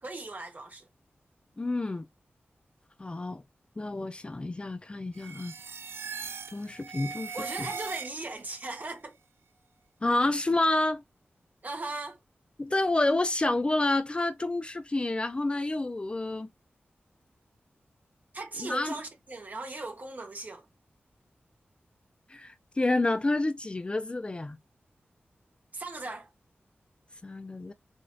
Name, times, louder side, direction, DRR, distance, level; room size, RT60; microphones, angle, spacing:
voice 1, 0.0-0.9 7.3-9.1 11.6-12.2 18.3-20.7 25.7-26.3, right 2 dB, 45° right, 1.2 m, -38 dB
voice 2, 1.6-2.0 3.0-3.4 3.8-5.5 6.5-7.7 10.0-11.0 12.6-16.5 18.6-18.9 22.3-24.6 27.2-27.7, left 2 dB, 25° left, 0.3 m, -29 dB
sound 1, 5.1-8.5, right 6 dB, 85° right, 0.4 m, -40 dB
4.8 x 2.6 x 2.2 m
wide cardioid pair, 95°, 4 cm